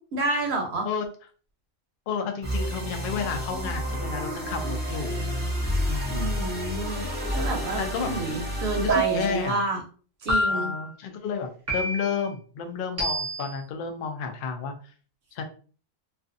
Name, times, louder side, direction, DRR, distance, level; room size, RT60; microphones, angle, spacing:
voice 1, 0.1-0.9 6.1-7.0 7.3-7.8 8.1-9.8 10.2-10.7, right 2 dB, 60° right, 1 dB, 0.8 m, -29 dB
voice 2, 2.1-5.2 5.9-6.4 7.8-8.1 8.8-9.6 10.5-14.7 15.3-15.4, left 6 dB, 70° left, 5 dB, 0.5 m, -31 dB
sound 1, 2.4-9.5, equal, 10° right, 0.8 m, -30 dB
sound 2, 8.9-9.5 10.3-10.9 11.7-12.3 13.0-13.6, right 2 dB, 25° right, 0.3 m, -27 dB
2.4 x 2.4 x 2.5 m, 0.40 s
omnidirectional pair, 1.4 m